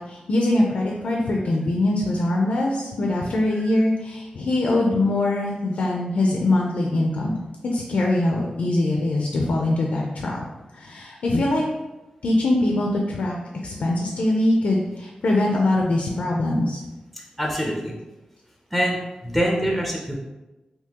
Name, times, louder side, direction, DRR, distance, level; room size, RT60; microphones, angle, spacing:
voice 1, 0.0-7.4 7.7-10.4 10.7-11.6 12.2-16.8 19.3-19.4, left 2 dB, 85° left, -1 dB, 0.5 m, -22 dB
voice 2, 17.4-17.9 18.7-20.2, equal, 5° right, -1 dB, 0.5 m, -24 dB
3.6 x 2.7 x 2.9 m, 1.1 s
wide cardioid pair, 100°, 2 cm